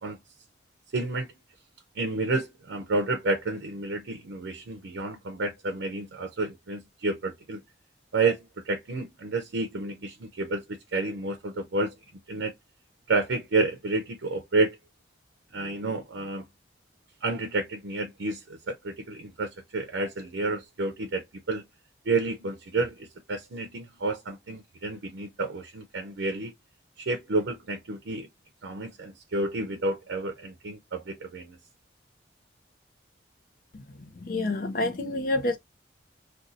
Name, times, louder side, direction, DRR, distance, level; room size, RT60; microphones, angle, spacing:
voice 1, 0.9-1.3 1.9-7.6 8.1-11.9 12.3-12.5 13.1-14.8 15.5-16.4 17.2-21.6 22.0-26.5 27.0-28.3 28.6-31.6, right 2 dB, 85° right, 0.5 m, -30 dB
voice 2, 33.7-35.6, left 2 dB, 50° left, 0.5 m, -29 dB
2.6 x 2.3 x 3.9 m
head